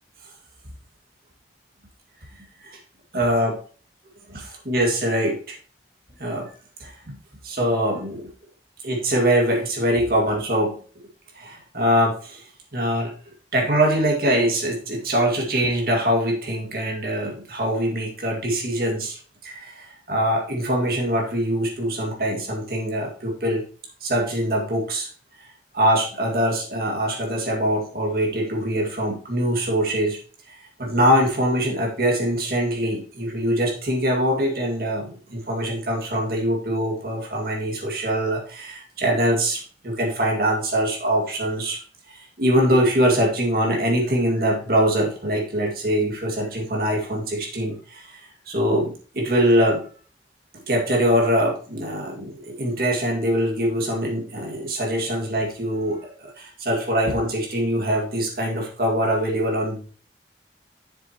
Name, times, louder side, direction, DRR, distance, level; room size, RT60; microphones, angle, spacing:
voice 1, 3.1-3.6 4.3-5.6 6.2-6.5 6.8-7.1 7.4-8.2 8.8-10.7 11.4-12.4 12.7-13.1 13.5-19.2 19.4-23.6 24.0-25.1 25.7-30.2 30.5-41.8 42.1-48.2 48.5-49.9 50.7-59.9, equal, 55° right, 0 dB, 2.1 m, -23 dB
7.4 x 6.9 x 3.0 m, 0.41 s
head